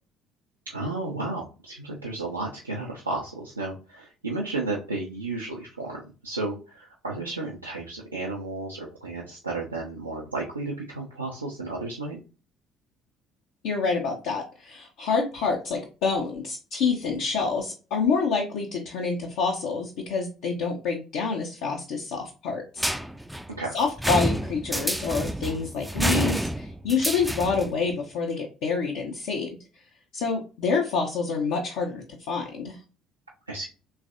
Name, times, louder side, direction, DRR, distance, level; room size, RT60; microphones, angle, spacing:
voice 1, 0.7-12.2 23.6-23.8 33.5-33.7, right 2 dB, 85° right, -3 dB, 0.4 m, -33 dB
voice 2, 13.6-22.8 23.7-29.6 30.1-32.8, left 5 dB, 60° left, 0 dB, 0.5 m, -27 dB
sound 1, 22.8-27.8, equal, 5° right, 0.3 m, -28 dB
3.2 x 2.3 x 2.5 m, 0.32 s
figure-of-eight pair, 50°, 0 cm